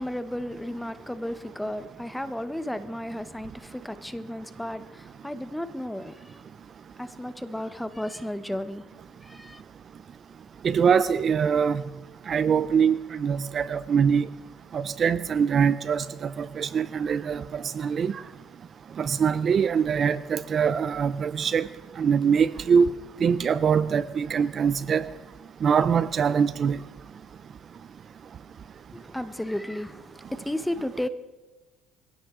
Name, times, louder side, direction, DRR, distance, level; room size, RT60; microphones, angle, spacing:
voice 1, 0.0-6.4 7.0-8.8 9.2-9.6 28.9-31.1, left 1 dB, 5° left, 0.9 m, -33 dB
voice 2, 10.6-11.8 12.3-14.3 14.7-18.2 19.0-21.7 22.0-22.9 23.2-25.1 25.6-26.8, right 7 dB, 35° right, 0.5 m, -23 dB
22.0 x 16.0 x 3.7 m
cardioid pair, 130°, 0 cm